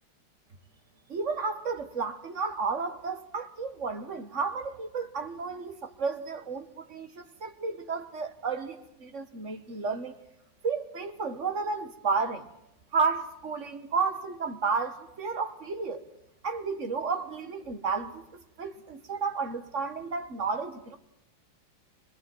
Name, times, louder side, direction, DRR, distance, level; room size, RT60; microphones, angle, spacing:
voice 1, 1.1-10.2 10.6-12.5 12.9-16.0 16.4-21.0, right 4 dB, 40° right, 1.6 m, -32 dB
24.0 x 21.5 x 7.8 m
omnidirectional pair, 2.1 m